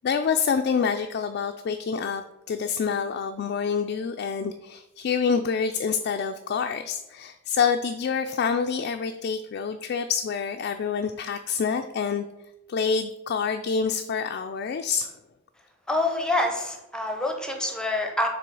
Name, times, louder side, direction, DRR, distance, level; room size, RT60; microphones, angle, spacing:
voice 1, 0.0-12.3 12.7-15.1, left 6 dB, 55° left, 6 dB, 0.3 m, -27 dB
voice 2, 15.9-18.3, left 2 dB, 5° left, 3 dB, 0.7 m, -26 dB
6.8 x 3.2 x 4.6 m, 0.93 s
head